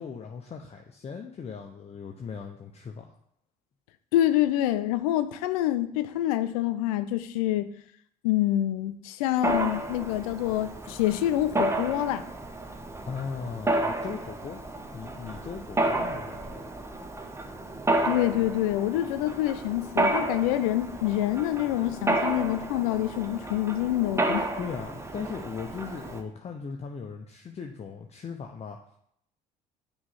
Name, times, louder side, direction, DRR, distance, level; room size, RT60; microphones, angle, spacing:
voice 1, 0.0-3.1 13.1-14.6 14.9-16.7 24.6-28.8, left 5 dB, 35° left, 0.7 m, -38 dB
voice 2, 4.1-7.7 8.2-12.2 18.0-24.5, left 13 dB, 85° left, 0.4 m, -26 dB
Mechanisms, 9.4-26.2, right 2 dB, 15° right, 0.8 m, -31 dB
6.1 x 3.2 x 5.5 m
hypercardioid pair, 65°, 18 cm